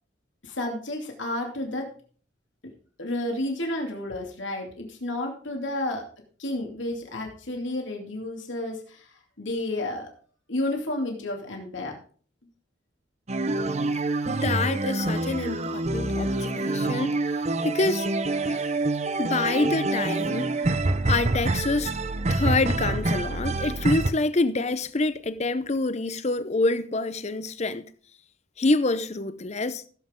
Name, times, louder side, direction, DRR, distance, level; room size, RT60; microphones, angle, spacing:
voice 1, 0.4-1.9 3.0-6.1 6.4-10.1 10.5-12.0, left 1 dB, 70° left, 2.7 m, -31 dB
sound 1, 13.3-24.1, right 2 dB, 35° right, 0.7 m, -26 dB
voice 2, 14.3-17.1 17.6-18.1 18.4-18.7 19.2-20.7 21.0-21.9 22.3-27.9 28.6-29.8, left 3 dB, 35° left, 0.7 m, -26 dB
16.0 x 7.8 x 3.7 m
head